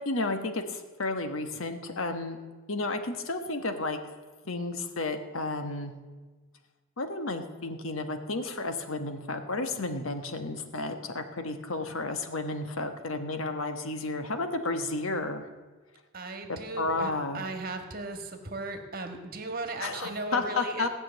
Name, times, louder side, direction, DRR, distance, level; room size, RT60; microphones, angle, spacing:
voice 1, 0.0-2.4 2.7-4.0 4.4-5.9 7.0-15.4 16.5-17.4 19.8-20.9, left 2 dB, 80° left, 7 dB, 1.2 m, -32 dB
voice 2, 16.1-20.9, right 2 dB, 45° right, 6 dB, 1.5 m, -37 dB
16.5 x 6.2 x 9.0 m, 1.3 s
head